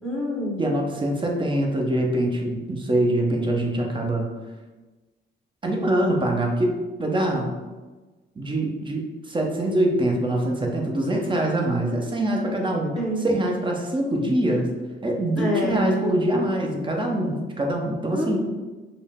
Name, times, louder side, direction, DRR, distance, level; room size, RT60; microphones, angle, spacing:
voice 1, 0.0-0.7 12.9-13.5 15.4-15.8 18.1-18.4, equal, ahead, -4 dB, 1.5 m, -27 dB
voice 2, 0.6-4.3 5.6-6.7 7.0-7.5 8.4-12.9 13.2-14.7 15.0-18.4, right 1 dB, 25° right, 0 dB, 0.8 m, -24 dB
5.3 x 2.1 x 3.5 m, 1.2 s
cardioid pair, 90°, 20 cm